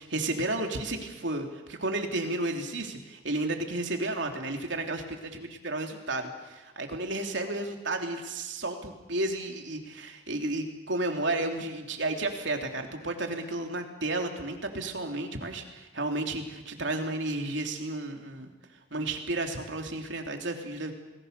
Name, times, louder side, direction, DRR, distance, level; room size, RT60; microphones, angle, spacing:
voice 1, 0.0-5.0 5.3-18.5 18.9-20.9, right 2 dB, 70° right, 3 dB, 3.2 m, -32 dB
29.0 x 20.0 x 6.8 m, 1.1 s
head